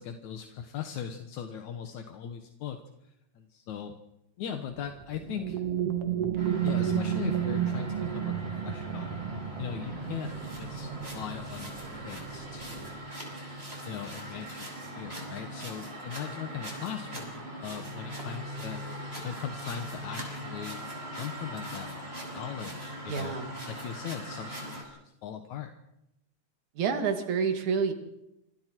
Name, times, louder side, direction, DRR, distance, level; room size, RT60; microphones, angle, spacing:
voice 1, 0.0-3.9 4.4-5.6 6.6-9.1 9.6-13.0 13.8-18.8 19.2-20.8 21.1-22.0 22.3-23.4 23.7-25.7, left 8 dB, 80° left, 6 dB, 2.6 m, -39 dB
sound 1, 4.7-13.0, right 9 dB, 60° right, 2.3 m, -33 dB
sound 2, 6.4-24.8, right 1 dB, 20° right, 6.7 m, -40 dB
voice 2, 23.1-23.5 26.8-27.9, right 6 dB, 80° right, 6 dB, 3.5 m, -28 dB
27.5 x 26.0 x 4.6 m, 0.86 s
omnidirectional pair, 3.3 m